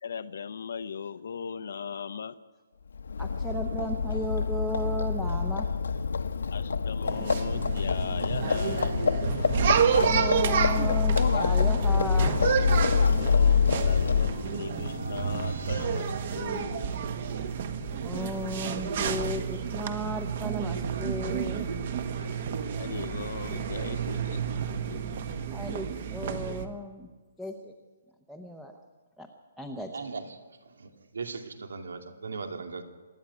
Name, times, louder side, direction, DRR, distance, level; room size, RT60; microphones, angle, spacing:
voice 1, 0.0-2.4 6.5-9.0 13.0-16.9 22.8-24.6, left 6 dB, 50° left, 12 dB, 0.7 m, -38 dB
Livestock farm animals working animals, 2.9-14.6, left 5 dB, 85° left, 1.1 m, -26 dB
voice 2, 3.2-5.7 9.7-12.4 18.0-21.7 25.5-27.1 27.4-27.7 28.3-28.7 29.2-29.3 29.6-29.9, equal, ahead, 4 dB, 0.8 m, -35 dB
sound 1, 7.1-26.7, right 7 dB, 35° right, 1.3 m, -30 dB
sound 2, 13.6-17.0, right 3 dB, 50° right, 5.2 m, -37 dB
voice 3, 29.9-30.4 30.8-32.8, right 4 dB, 85° right, 5 dB, 2.4 m, -38 dB
25.5 x 12.0 x 9.5 m, 1.4 s
hypercardioid pair, 175°, 0 cm